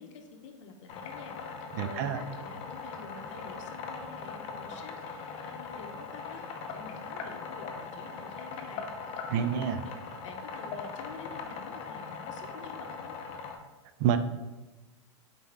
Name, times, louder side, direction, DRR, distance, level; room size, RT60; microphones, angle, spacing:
voice 1, 0.0-6.4 6.7-8.9 9.4-10.0 10.2-13.2, left 4 dB, 75° left, 5 dB, 0.7 m, -48 dB
sound 1, 0.9-13.6, left 5 dB, 40° left, 0.6 m, -40 dB
voice 2, 1.8-2.2 9.3-9.8 14.0-14.2, right 9 dB, 50° right, 11 dB, 0.4 m, -27 dB
4.1 x 3.5 x 3.3 m, 1.1 s
hypercardioid pair, 130°, 16 cm